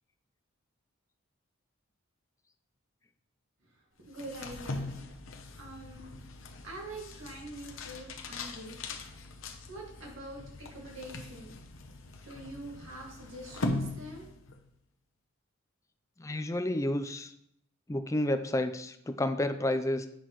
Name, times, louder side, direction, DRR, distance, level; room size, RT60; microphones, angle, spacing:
voice 1, 3.6-5.0 5.6-6.1 6.6-9.3 9.7-11.6 12.2-14.3, right 1 dB, 70° right, -1 dB, 2.0 m, -45 dB
sound 1, 4.1-14.6, left 2 dB, 65° left, 0.8 m, -40 dB
voice 2, 16.2-17.3 17.9-20.1, left 1 dB, 15° left, 10 dB, 0.4 m, -30 dB
8.3 x 6.0 x 3.1 m, 0.75 s
head